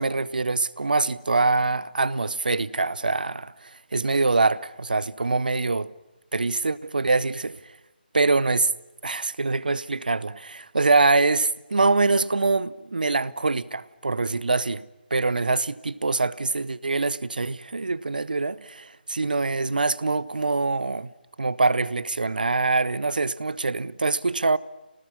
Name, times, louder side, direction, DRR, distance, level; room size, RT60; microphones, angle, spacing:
voice 1, 0.0-5.9 6.3-7.6 8.1-8.7 9.0-21.1 21.4-24.6, right 3 dB, 60° right, 0.9 m, -24 dB
27.0 x 19.5 x 9.9 m
figure-of-eight pair, 150°, 5 cm